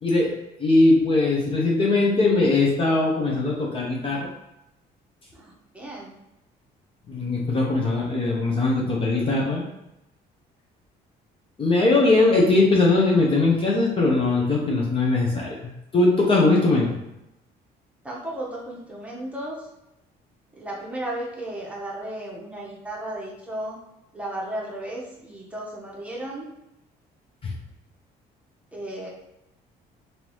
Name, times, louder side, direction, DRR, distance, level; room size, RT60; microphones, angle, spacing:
voice 1, 0.6-4.3 7.1-9.6 11.6-15.6 15.9-16.9 27.4-27.5, left 2 dB, 30° left, -2 dB, 0.8 m, -20 dB
voice 2, 5.3-6.1 18.0-19.7 20.6-23.8 24.1-26.5 28.7-29.1, right 1 dB, 10° right, -4 dB, 1.0 m, -34 dB
3.7 x 2.7 x 3.1 m, 0.90 s
cardioid pair, 110°, 17 cm